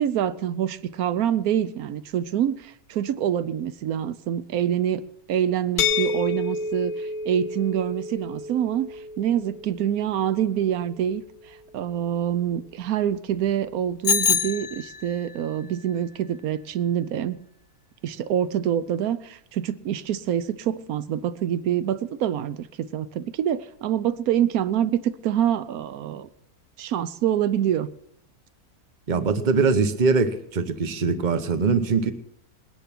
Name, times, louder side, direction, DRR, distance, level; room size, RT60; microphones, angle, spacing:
voice 1, 0.0-5.0 5.3-8.9 9.2-11.2 11.7-17.4 18.0-26.3 26.8-27.9, right 10 dB, 75° right, 15 dB, 1.2 m, -26 dB
sound 1, 5.8-11.6, left 4 dB, 70° left, 1.1 m, -31 dB
Bicycle bell, 14.0-15.3, left 7 dB, 35° left, 0.9 m, -24 dB
voice 2, 29.1-32.1, right 4 dB, 35° right, 10 dB, 1.1 m, -22 dB
19.5 x 10.5 x 5.9 m, 0.75 s
omnidirectional pair, 1.6 m